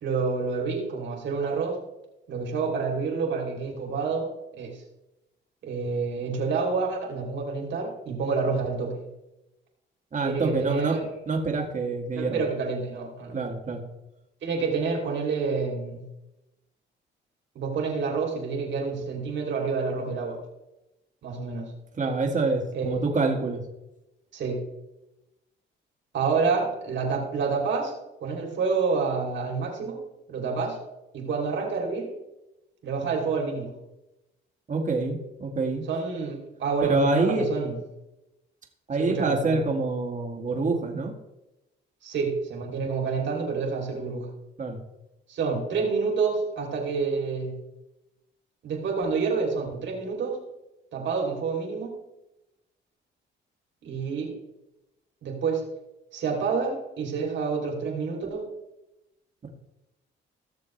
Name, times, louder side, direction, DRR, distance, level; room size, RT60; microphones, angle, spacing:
voice 1, 0.0-1.8 2.3-4.3 4.6-4.8 5.6-9.0 10.2-11.0 12.2-13.4 14.4-16.0 17.5-20.4 21.2-21.7 22.7-23.0 24.3-24.6 26.1-27.9 28.2-30.0 30.3-30.8 31.1-32.1 32.8-33.7 35.9-37.8 39.0-39.6 42.0-44.3 45.3-47.6 48.6-50.4 50.9-51.9 53.8-54.3 55.2-55.6 56.1-58.5, right 4 dB, 70° right, 1 dB, 2.9 m, -28 dB
voice 2, 10.1-11.0 11.3-12.4 13.3-13.8 22.0-23.6 34.7-35.8 36.8-37.5 38.9-41.1 44.6-44.8 59.4-59.5, right 3 dB, 40° right, 2 dB, 2.0 m, -26 dB
17.5 x 7.0 x 3.2 m, 0.95 s
cardioid pair, 90°, 20 cm